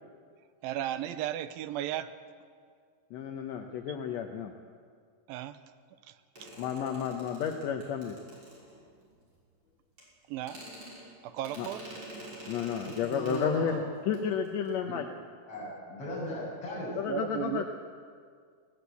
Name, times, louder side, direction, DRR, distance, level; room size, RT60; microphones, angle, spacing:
voice 1, 0.6-2.1 5.3-5.6 6.1-6.5 10.3-10.6 11.2-11.8 17.1-17.6, right 12 dB, 90° right, 12 dB, 2.5 m, -35 dB
voice 2, 3.1-4.5 6.6-8.2 11.6-11.7 12.5-15.0 17.0-17.6, left 7 dB, 70° left, 4 dB, 1.7 m, -32 dB
sound 1, 6.4-9.1 10.0-10.1 10.4-13.7 14.0-14.2 14.4-14.7, right 1 dB, 35° right, 6.7 m, -47 dB
voice 3, 13.1-13.8 14.8-14.9 15.5-17.0, equal, 40° left, -5 dB, 8.8 m, -37 dB
20.0 x 18.0 x 8.3 m, 2.1 s
omnidirectional pair, 4.1 m